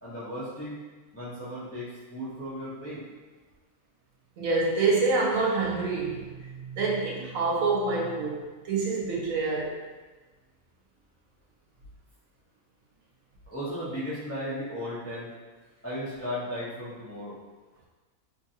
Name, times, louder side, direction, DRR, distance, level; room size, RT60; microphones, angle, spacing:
voice 1, 0.0-0.8 1.1-3.0 13.5-15.3 15.8-17.4, equal, 20° left, -10 dB, 0.4 m, -35 dB
voice 2, 4.4-9.8, right 3 dB, 75° right, -3 dB, 1.1 m, -27 dB
3.0 x 2.6 x 2.7 m, 1.3 s
omnidirectional pair, 1.5 m